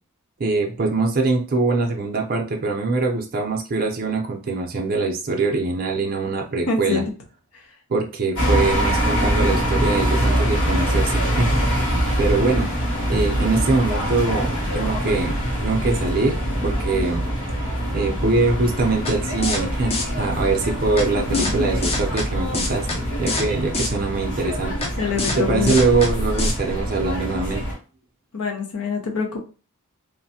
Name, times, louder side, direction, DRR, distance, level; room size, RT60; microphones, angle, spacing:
voice 1, 0.4-7.0 7.9-11.9 12.2-12.7 13.1-17.3 17.6-17.7 17.9-24.8 25.3-27.6, right 3 dB, 40° right, 1 dB, 0.5 m, -23 dB
voice 2, 6.7-7.0 7.5-7.7 21.2-21.9 25.0-25.8 28.3-29.4, left 4 dB, 75° left, 2 dB, 0.7 m, -26 dB
sound 1, 8.4-27.7, equal, 55° left, 1.2 m, -24 dB
sound 2, 19.1-19.2 19.4-19.6 19.9-20.0 21.0-21.1 21.3-21.5 21.8-22.3 22.5-23.0 23.3-23.5 23.7-23.9 24.8-24.9 25.2-25.4 25.7-26.1 26.4-26.5, left 3 dB, 25° left, 0.5 m, -25 dB
3.1 x 2.1 x 2.7 m, 0.34 s
head